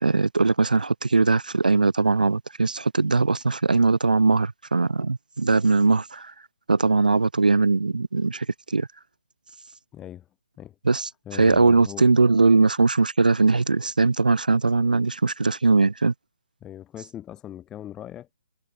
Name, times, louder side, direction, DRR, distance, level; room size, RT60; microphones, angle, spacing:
voice 1, 0.0-6.3 6.7-8.9 10.8-16.1, right 3 dB, 80° right, 1.6 m, -20 dB
voice 2, 9.9-10.3 10.6-10.7 11.3-12.4 16.6-18.4, left 11 dB, 15° left, 2.6 m, -40 dB
figure-of-eight pair, 140°, 4 cm